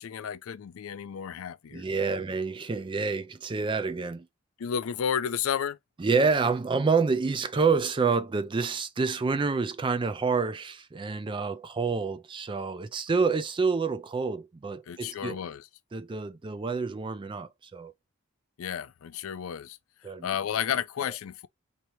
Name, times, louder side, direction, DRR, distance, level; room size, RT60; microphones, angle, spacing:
voice 1, 0.0-1.8 4.6-5.8 14.9-15.6 18.6-19.8 20.2-21.5, left 8 dB, 70° left, 0.4 m, -32 dB
voice 2, 1.7-4.3 6.0-15.4 15.9-17.9 20.0-20.3 21.0-21.1, right 4 dB, 20° right, 0.3 m, -28 dB
4.4 x 2.7 x 2.9 m
head